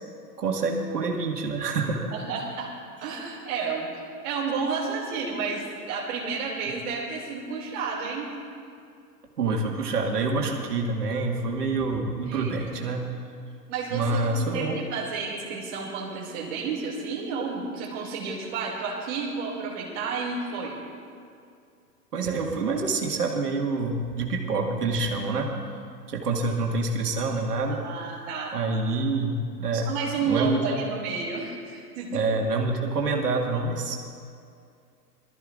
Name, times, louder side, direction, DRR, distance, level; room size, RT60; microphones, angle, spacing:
voice 1, 0.4-2.1 9.4-13.0 13.9-14.7 22.1-25.5 26.1-27.8 28.5-29.3 29.6-29.9 30.3-30.6 32.1-34.0, right 3 dB, 70° right, 1 dB, 2.1 m, -26 dB
voice 2, 2.1-2.7 3.0-3.9 4.2-8.3 12.3-13.0 13.7-20.8 27.7-28.5 29.7-32.3, right 5 dB, 45° right, -3 dB, 2.9 m, -31 dB
23.0 x 13.5 x 2.6 m, 2.4 s
figure-of-eight pair, 105°, 48 cm